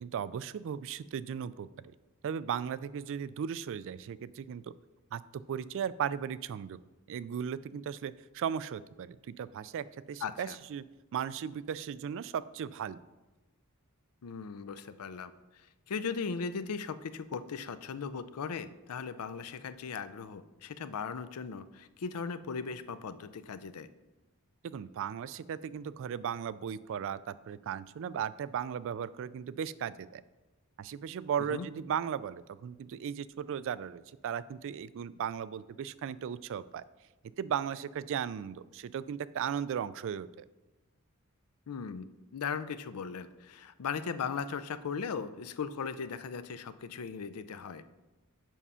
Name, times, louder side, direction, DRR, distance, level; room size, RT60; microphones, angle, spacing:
voice 1, 0.0-1.7 2.2-4.7 5.1-6.8 7.1-10.8 11.1-13.0 24.6-30.2 30.8-36.8 37.4-40.5, right 8 dB, 60° right, 17 dB, 0.3 m, -36 dB
voice 2, 10.2-10.6 14.2-15.3 15.9-23.9 31.4-31.7 41.7-42.1 42.3-47.8, left 5 dB, 80° left, 13 dB, 0.5 m, -38 dB
7.3 x 5.5 x 5.6 m, 1.1 s
head